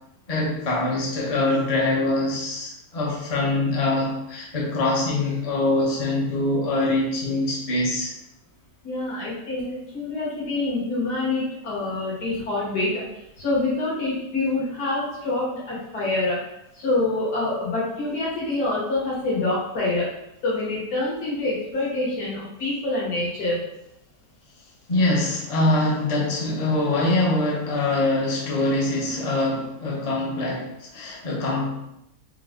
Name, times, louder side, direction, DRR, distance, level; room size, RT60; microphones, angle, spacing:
voice 1, 0.3-8.1 24.9-31.7, left 2 dB, 35° left, -4 dB, 0.6 m, -24 dB
voice 2, 8.8-13.0 13.4-16.4 16.7-20.1 20.4-23.6, left 2 dB, 65° left, -7 dB, 2.2 m, -26 dB
4.8 x 2.5 x 3.7 m, 0.85 s
omnidirectional pair, 1.8 m